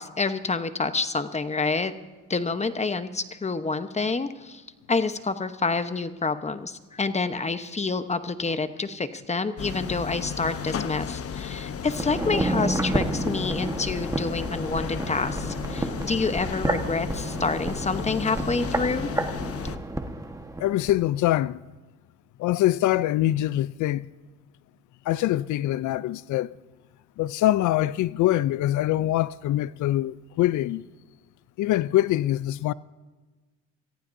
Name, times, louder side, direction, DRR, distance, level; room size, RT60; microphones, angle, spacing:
voice 1, 0.0-1.9 2.3-4.6 4.9-19.1, left 4 dB, 20° left, 0.9 m, -28 dB
sound 1, 9.6-19.8, left 7 dB, 50° left, 0.9 m, -34 dB
sound 2, 11.9-21.0 21.3-21.4, right 2 dB, 10° right, 1.3 m, -30 dB
voice 2, 20.6-21.6 22.4-24.1 25.1-26.6 27.2-30.8 31.6-32.7, left 14 dB, 75° left, 0.5 m, -24 dB
27.0 x 15.0 x 2.7 m
cardioid pair, 90°, 30 cm